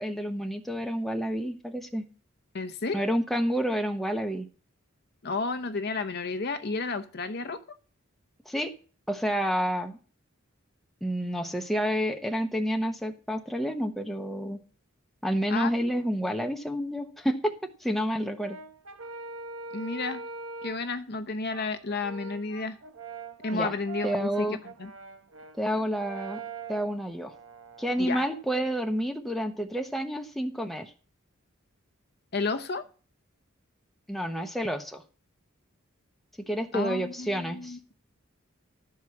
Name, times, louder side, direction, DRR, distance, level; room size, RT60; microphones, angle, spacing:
voice 1, 0.0-2.0 2.9-4.5 8.5-8.7 9.1-10.0 11.0-14.6 15.2-17.5 17.8-18.6 23.5-23.7 24.0-24.6 25.6-26.4 26.7-27.3 27.8-30.9 34.1-35.0 36.5-37.8, equal, ahead, 4 dB, 0.7 m, -29 dB
voice 2, 2.5-3.0 5.2-7.6 15.5-16.0 19.7-20.2 20.6-22.8 23.4-24.5 24.8-24.9 28.0-28.2 32.3-32.8 36.7-37.8, left 3 dB, 50° left, 9 dB, 0.8 m, -32 dB
Brass instrument, 18.4-20.9 21.5-28.4, right 4 dB, 85° right, 1.1 m, -43 dB
12.0 x 4.8 x 7.0 m, 0.38 s
head